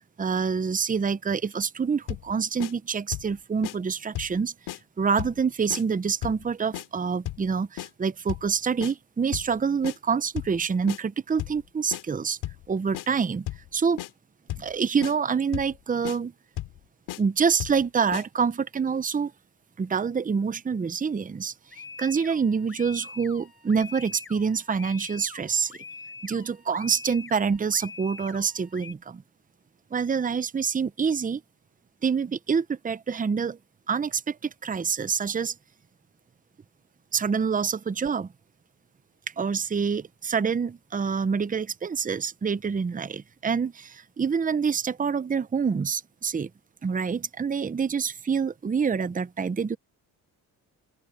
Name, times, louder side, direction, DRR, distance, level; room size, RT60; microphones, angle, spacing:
voice 1, 0.2-4.5 5.0-12.4 12.7-13.5 13.7-14.0 14.6-16.3 17.2-19.3 19.8-21.5 22.0-25.7 26.2-29.2 29.9-31.4 32.0-33.6 33.9-35.5 37.1-38.3 39.4-46.5 46.8-49.8, right 6 dB, 20° right, 0.8 m, -26 dB
sound 1, 2.1-2.3 2.6-2.7 3.1-3.3 3.6-3.8 4.1-4.4 4.7-4.8 5.2-5.4 5.7-5.8 6.2-6.4 6.7-6.9 7.3-7.5 7.8-7.9 8.3-8.5 8.8-8.9 9.3-9.5 9.8-10.0 10.4-10.6 10.9-11.0 11.4-11.6 11.9-12.0 12.4-12.6 12.9-13.1 13.5-13.7 14.0-14.1 14.5-14.7 15.0-15.1 15.5-15.8 16.0-16.2 16.6-16.8 17.1-17.2 17.6-17.8 18.1-18.2, left 15 dB, 85° left, 3.4 m, -34 dB
sound 2, 21.7-28.9, left 4 dB, 30° left, 4.6 m, -44 dB
open air
cardioid pair, 90°, 39 cm